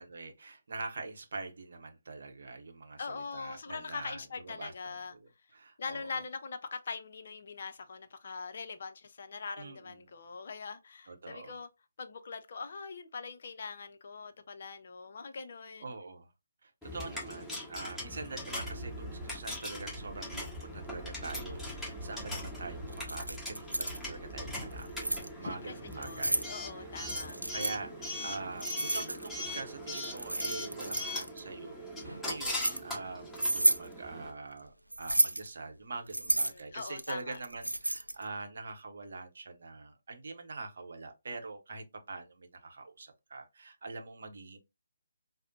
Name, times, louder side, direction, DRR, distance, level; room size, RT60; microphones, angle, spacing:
voice 1, 0.0-5.2 5.5-6.2 9.6-10.1 11.1-11.6 15.8-16.3 16.6-26.5 26.8-44.6, right 3 dB, 50° right, 0.7 m, -44 dB
voice 2, 3.0-5.1 5.8-11.7 12.0-15.9 25.4-27.4 36.4-37.4, left 5 dB, 45° left, 0.5 m, -42 dB
Coin (dropping) / Alarm, 16.8-34.3, left 1 dB, ahead, 1.5 m, -41 dB
Wind, 18.5-25.6, equal, 25° right, 1.3 m, -46 dB
Keys jangling, 22.9-24.0 24.7-25.3 25.9-26.5 27.1-27.8 28.6-29.5 29.9-31.4 32.0-32.8 33.4-33.9 34.9-35.5 36.1-38.2, right 1 dB, 85° right, 0.4 m, -31 dB
4.8 x 2.0 x 2.7 m
figure-of-eight pair, 140°, 0 cm